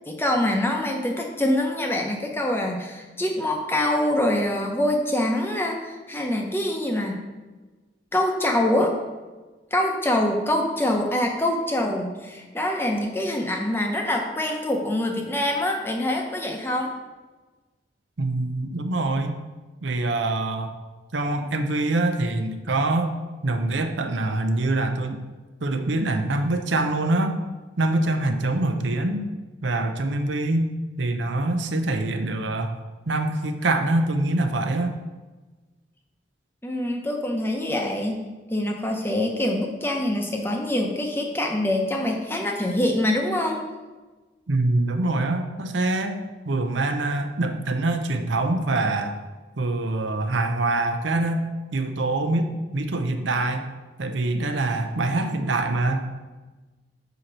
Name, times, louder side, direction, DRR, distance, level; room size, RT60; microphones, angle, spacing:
voice 1, 0.1-7.2 8.1-8.9 9.7-16.9 36.6-43.6, left 1 dB, 10° left, 2 dB, 0.7 m, -25 dB
voice 2, 18.2-19.4 19.8-20.7 21.1-23.2 23.4-25.2 25.6-27.4 27.8-29.3 29.6-30.7 31.0-32.7 33.1-34.9 44.5-46.2 46.5-49.2 49.6-51.5 51.7-53.7 54.0-56.0, right 2 dB, 80° right, 6 dB, 0.7 m, -24 dB
8.0 x 2.9 x 6.0 m, 1.3 s
head